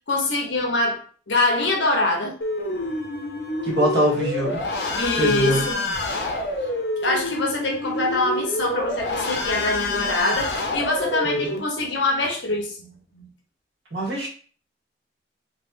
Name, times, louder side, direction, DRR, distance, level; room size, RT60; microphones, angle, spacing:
voice 1, 0.1-1.0 1.3-2.4 5.0-5.8 7.0-13.3, left 2 dB, 90° left, 1 dB, 0.9 m, -24 dB
sound 1, 2.4-11.6, left 2 dB, 70° left, 0.7 m, -27 dB
voice 2, 3.6-4.6 4.9-5.6 11.2-11.6 13.9-14.3, equal, 75° right, -4 dB, 1.5 m, -24 dB
3.3 x 2.7 x 2.6 m, 0.43 s
head